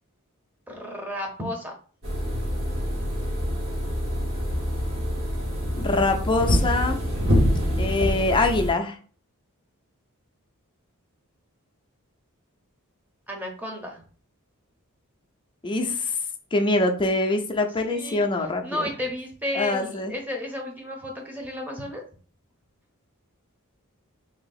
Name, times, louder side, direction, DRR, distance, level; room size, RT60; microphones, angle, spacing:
voice 1, 0.7-1.7 13.3-14.0 17.9-18.3 18.6-22.0, left 1 dB, 10° right, 1 dB, 0.8 m, -33 dB
sound 1, 2.0-8.7, equal, 65° right, 1.5 m, -25 dB
voice 2, 5.7-7.0 7.8-9.0 15.6-16.2 16.5-18.9 19.5-20.1, left 2 dB, 20° left, 4 dB, 0.5 m, -24 dB
2.9 x 2.8 x 4.0 m, 0.41 s
head